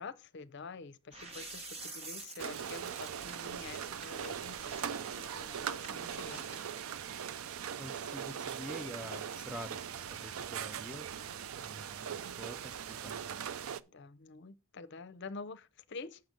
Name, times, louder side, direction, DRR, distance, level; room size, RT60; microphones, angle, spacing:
voice 1, 0.0-5.0 5.3-6.6 13.9-16.2, left 4 dB, 55° left, 0.6 m, -47 dB
sound 1, 1.1-6.9, right 3 dB, 30° right, 1.2 m, -49 dB
sound 2, 2.4-13.8, right 8 dB, 80° right, 0.4 m, -40 dB
voice 2, 7.8-11.1 11.6-13.2, right 1 dB, 5° right, 0.4 m, -47 dB
7.8 x 5.8 x 5.1 m
head